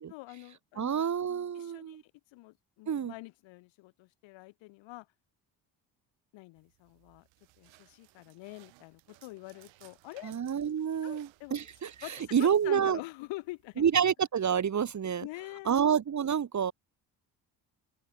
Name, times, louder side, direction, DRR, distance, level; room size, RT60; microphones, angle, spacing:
voice 1, 0.1-1.0 1.5-2.0 2.3-5.1 6.3-7.3 7.6-10.3 11.0-11.6 12.0-13.9 15.2-15.8, left 21 dB, 85° left, 4.4 m, -46 dB
voice 2, 0.8-2.0 2.9-3.1 10.2-11.9 12.3-13.0 13.8-15.3 15.7-16.7, right 8 dB, 40° right, 1.4 m, -28 dB
sound 1, 6.6-13.9, right 22 dB, 85° right, 7.2 m, -61 dB
open air
supercardioid pair, 70°, 44 cm